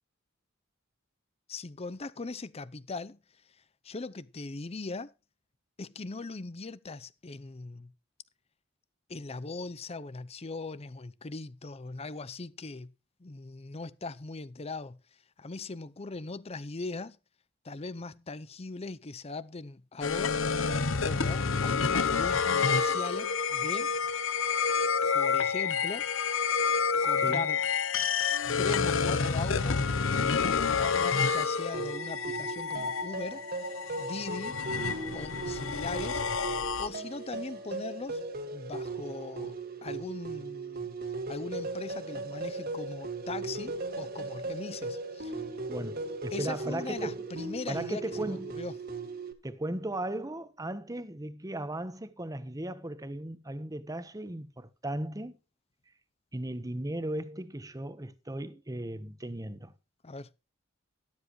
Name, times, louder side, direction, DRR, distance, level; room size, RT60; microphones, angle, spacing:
voice 1, 1.5-3.2 3.8-5.1 5.8-7.9 9.1-12.9 13.2-15.0 15.4-17.2 17.6-20.4 21.0-24.3 25.1-26.1 27.0-27.6 28.6-29.8 30.2-33.5 34.0-34.6 35.1-36.2 36.8-38.2 38.5-39.5 39.8-40.9 41.3-45.4 46.3-48.7 60.0-60.3, left 3 dB, 30° left, 0.6 m, -40 dB
sound 1, 20.0-37.3, left 5 dB, 75° left, 0.9 m, -29 dB
sound 2, 31.7-49.3, right 3 dB, 50° right, 1.9 m, -38 dB
voice 2, 45.7-47.3 47.7-48.5 49.4-55.4 56.3-59.7, right 1 dB, 20° right, 1.0 m, -36 dB
13.0 x 12.5 x 3.1 m
head